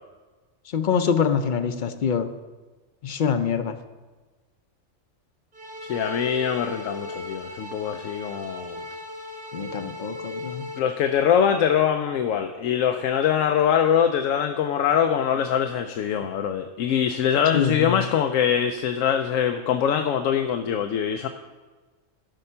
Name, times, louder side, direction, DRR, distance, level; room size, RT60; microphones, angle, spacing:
voice 1, 0.7-2.3 3.0-3.8 9.5-10.7 17.5-18.0, left 7 dB, 50° left, 9 dB, 0.6 m, -25 dB
sound 1, 5.5-10.8, left 2 dB, 45° right, 1.4 m, -36 dB
voice 2, 5.9-8.8 10.8-21.3, left 8 dB, 90° left, 6 dB, 1.0 m, -23 dB
13.0 x 5.5 x 5.6 m, 1.3 s
omnidirectional pair, 1.3 m